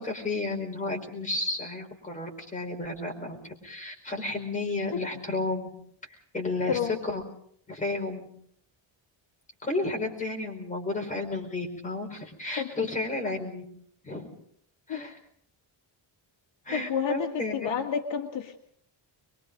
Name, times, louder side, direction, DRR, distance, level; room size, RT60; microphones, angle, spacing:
voice 1, 0.0-3.4 3.6-5.7 6.3-7.2 7.7-8.3 9.6-13.6 14.0-14.3 14.9-15.1 16.6-17.7, left 2 dB, 15° left, 2 dB, 4.6 m, -32 dB
voice 2, 6.7-7.0 12.6-12.7 14.9-15.2 16.7-18.6, left 7 dB, 65° left, 4 dB, 2.0 m, -30 dB
24.0 x 23.0 x 5.2 m, 0.65 s
cardioid pair, 165°, 47 cm